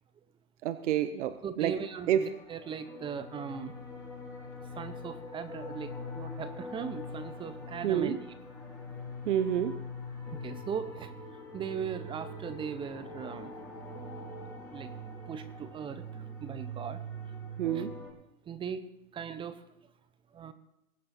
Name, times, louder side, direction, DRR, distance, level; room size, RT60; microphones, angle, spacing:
voice 1, 0.6-1.7 2.1-2.2 7.8-8.2 9.3-9.7 17.6-17.9, right 11 dB, 55° right, 11 dB, 1.0 m, -28 dB
voice 2, 1.4-3.8 4.8-8.2 10.3-11.1 11.5-13.5 14.7-14.9 15.3-16.0 16.4-17.0 17.7-17.8 18.5-19.6 20.3-20.5, right 7 dB, 10° right, 12 dB, 0.7 m, -38 dB
sound 1, 1.8-18.1, left 1 dB, 5° left, 4.6 m, -43 dB
22.0 x 8.6 x 4.3 m, 0.83 s
hypercardioid pair, 130°, 42 cm